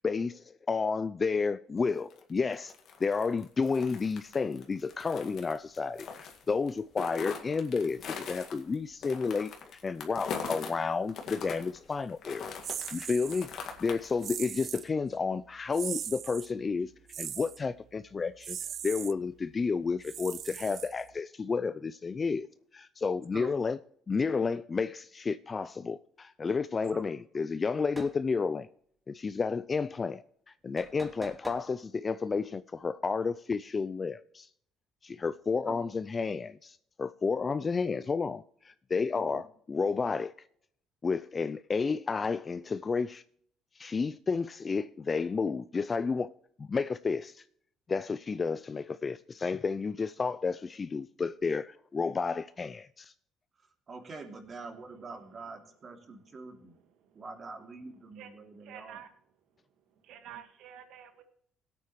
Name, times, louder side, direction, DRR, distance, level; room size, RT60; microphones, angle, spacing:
voice 1, 0.7-2.7 3.0-8.0 8.3-9.5 9.8-12.5 12.9-16.9 17.2-18.6 18.8-22.5 22.7-23.8 24.1-28.7 29.1-30.2 30.6-34.5 35.0-40.3 41.0-43.2 43.8-46.3 46.6-47.4 47.9-53.1, left 4 dB, 30° left, 0.4 m, -31 dB
sound 1, 1.9-10.7 11.1-14.3, left 6 dB, 60° left, 2.0 m, -41 dB
sound 2, 12.6-13.5 14.2-14.9 15.7-16.5 17.1-17.6 18.4-19.1 20.0-21.2, right 9 dB, 55° right, 0.3 m, -39 dB
sound 3, 27.9-28.2 30.8-31.7, right 1 dB, 10° right, 2.5 m, -46 dB
voice 2, 39.1-39.4 53.6-56.8 57.1-59.0, right 3 dB, 40° right, 2.6 m, -45 dB
voice 3, 54.5-55.5 56.3-57.2 58.1-59.1 59.4-61.2, right 9 dB, 75° right, 1.7 m, -52 dB
17.0 x 8.6 x 3.1 m
supercardioid pair, 85°, 0 cm